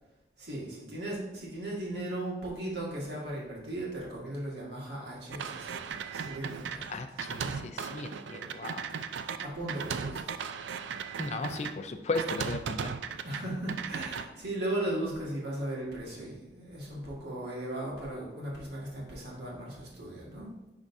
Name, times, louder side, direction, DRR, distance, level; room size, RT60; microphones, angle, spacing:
voice 1, 0.4-5.8 6.1-7.0 9.4-10.4 13.2-20.5, right 1 dB, 65° right, -5 dB, 1.8 m, -37 dB
sound 1, 5.3-11.7 12.1-13.4 13.7-14.2, right 6 dB, 85° right, 0.4 m, -37 dB
voice 2, 6.9-8.8 11.2-12.9, left 3 dB, 35° left, 7 dB, 0.4 m, -36 dB
10.0 x 3.6 x 2.6 m, 0.99 s
head